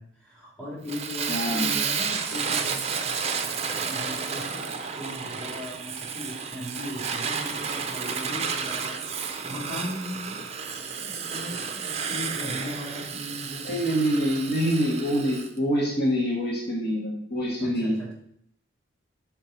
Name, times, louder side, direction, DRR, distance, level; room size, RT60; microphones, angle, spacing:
voice 1, 0.0-2.8 3.8-9.0 9.5-10.4 11.0-14.0 17.6-18.1, left 1 dB, 5° left, -5 dB, 2.8 m, -38 dB
Fire, 0.9-15.5, right 6 dB, 35° right, 0.6 m, -31 dB
voice 2, 1.3-1.7 13.6-18.0, equal, 55° left, -3 dB, 1.6 m, -25 dB
5.6 x 4.5 x 5.8 m, 0.70 s
head